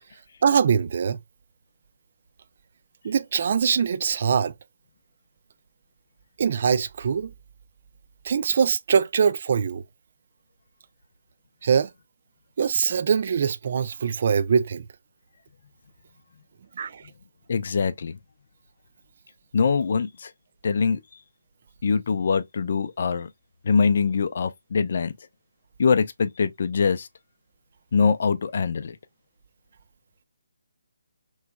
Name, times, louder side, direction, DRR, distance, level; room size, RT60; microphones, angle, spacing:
voice 1, 0.4-1.2 3.0-4.5 6.4-7.3 8.2-9.8 11.6-11.9 12.6-14.9 16.8-17.0, right 6 dB, 40° right, 0.3 m, -22 dB
voice 2, 17.5-18.2 19.5-20.3 20.6-21.0 21.8-23.3 23.6-25.1 25.8-27.1 27.9-29.0, left 5 dB, 45° left, 0.4 m, -23 dB
3.4 x 3.1 x 2.2 m
hypercardioid pair, 170°, 0 cm